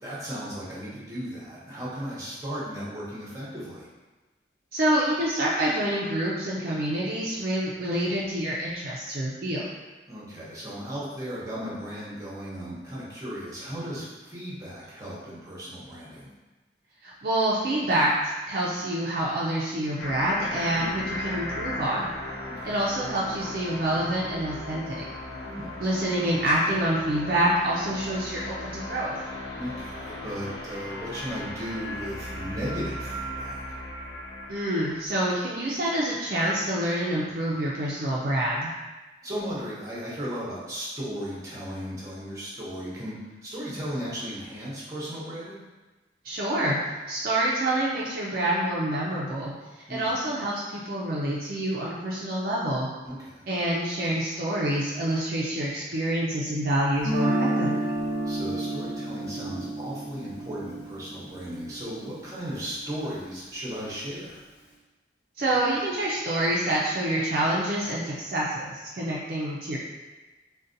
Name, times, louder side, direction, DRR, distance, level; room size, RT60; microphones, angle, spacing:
voice 1, 0.0-3.9 10.1-16.3 20.8-21.2 22.5-22.8 25.4-25.8 29.6-33.6 39.2-45.6 49.9-50.1 53.0-53.4 58.2-64.4, equal, 20° right, -7 dB, 0.8 m, -36 dB
voice 2, 4.7-9.6 17.0-22.1 22.6-25.1 25.8-29.2 34.5-38.7 46.2-49.5 49.9-52.9 53.5-58.0 65.4-69.8, right 1 dB, 55° right, -5 dB, 0.4 m, -27 dB
sound 1, 20.0-35.1, left 1 dB, 80° left, 0.9 m, -36 dB
Guitar, 57.0-63.0, right 1 dB, 35° left, 0.8 m, -31 dB
3.9 x 2.2 x 2.6 m, 1.2 s
head